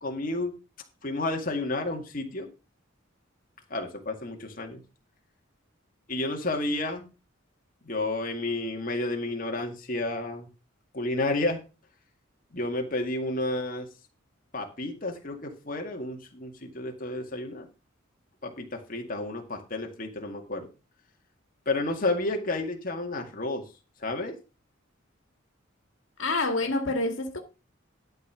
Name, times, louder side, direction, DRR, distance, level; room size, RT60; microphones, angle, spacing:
voice 1, 0.0-0.5 1.0-2.5 3.7-4.8 6.1-7.1 7.9-10.5 10.9-11.6 12.5-13.9 14.5-17.7 18.4-20.7 21.7-23.6 24.0-24.4, left 2 dB, 45° left, 2.1 m, -31 dB
voice 2, 26.2-27.4, left 2 dB, 75° left, 2.1 m, -27 dB
12.0 x 5.4 x 6.2 m
head